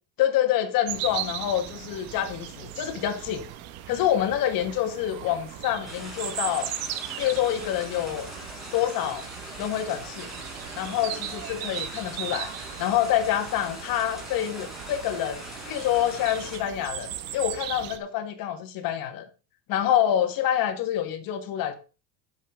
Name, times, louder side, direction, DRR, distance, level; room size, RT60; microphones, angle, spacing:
voice 1, 0.2-3.4 3.9-6.7 7.2-8.3 8.7-9.3 9.6-10.3 10.8-19.3 19.7-21.7, left 11 dB, 50° left, 2.2 m, -27 dB
sound 1, 0.9-18.0, right 11 dB, 80° right, 1.7 m, -38 dB
sound 2, 5.8-16.6, equal, ahead, 5.4 m, -42 dB
10.5 x 7.5 x 5.0 m
cardioid pair, 150°, 43 cm